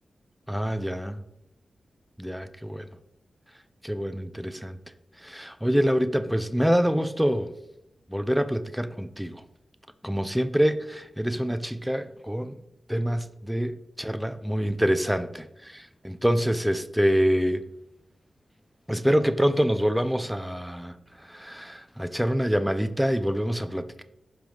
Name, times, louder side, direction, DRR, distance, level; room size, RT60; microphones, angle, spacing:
voice 1, 0.5-1.2 2.2-2.9 3.8-4.8 5.2-7.5 8.1-9.4 10.0-12.6 12.9-17.6 18.9-24.0, equal, 5° right, 0.6 m, -26 dB
15.0 x 5.3 x 3.9 m
cardioid pair, 75°, 0 cm